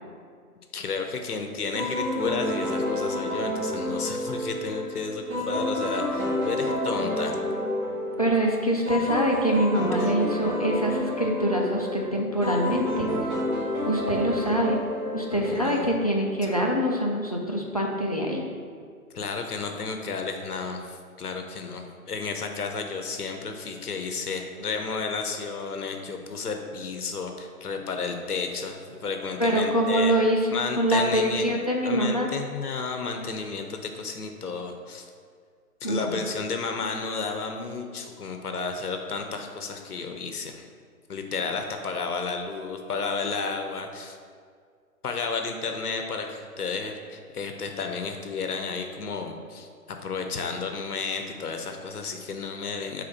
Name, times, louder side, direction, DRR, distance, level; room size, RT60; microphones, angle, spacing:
voice 1, 0.7-7.4 10.0-10.1 15.4-15.9 16.5-16.6 19.1-30.1 30.5-31.5 31.8-35.1 35.8-40.7 41.1-44.2 45.0-49.7 50.0-53.0, left 4 dB, 75° left, 4 dB, 0.9 m, -32 dB
sound 1, 1.7-16.0, left 1 dB, 20° right, 1.4 m, -29 dB
voice 2, 8.2-13.1 13.8-14.8 15.1-18.4 29.4-30.4 30.8-32.3 35.8-36.2, equal, 30° left, -1 dB, 0.4 m, -24 dB
4.8 x 4.2 x 5.9 m, 2.1 s
figure-of-eight pair, 140°, 45 cm